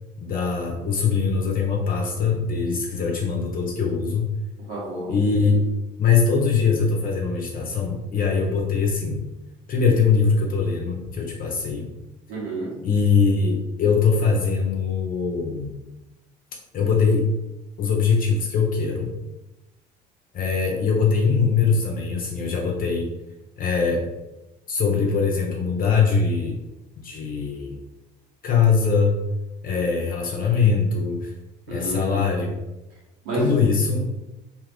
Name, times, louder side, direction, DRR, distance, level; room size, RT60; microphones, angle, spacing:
voice 1, 0.2-4.2 5.1-5.6 6.0-9.2 9.7-11.9 12.8-15.8 16.7-17.3 17.8-19.1 20.3-23.1 23.6-24.0 24.7-26.6 27.0-27.8 28.4-29.2 29.6-31.3 31.7-32.5 33.3-34.1, left 5 dB, 45° left, 0 dB, 0.7 m, -22 dB
voice 2, 4.7-5.1 12.3-12.7 29.7-29.8 31.7-32.3 33.2-33.6, right 2 dB, 75° right, -5 dB, 1.3 m, -29 dB
2.7 x 2.4 x 3.4 m, 1.0 s
hypercardioid pair, 65°, 21 cm